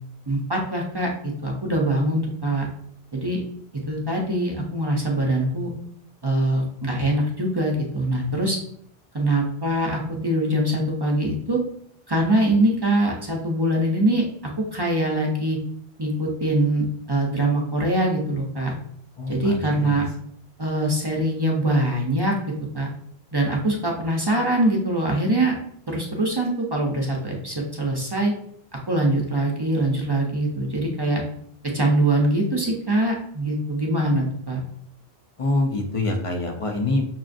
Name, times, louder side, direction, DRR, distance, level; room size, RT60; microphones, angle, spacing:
voice 1, 0.3-1.1 1.4-2.7 3.1-3.4 3.9-5.7 6.2-8.6 9.1-11.6 12.1-14.2 14.7-15.6 16.0-18.7 19.3-20.1 20.6-22.9 23.3-25.6 25.9-28.3 28.9-31.2 31.7-34.6, right 1 dB, 30° right, -1 dB, 0.5 m, -23 dB
voice 2, 19.2-19.7 35.4-37.0, left 2 dB, 45° left, 3 dB, 0.5 m, -25 dB
5.6 x 2.4 x 2.5 m, 0.65 s
omnidirectional pair, 1.1 m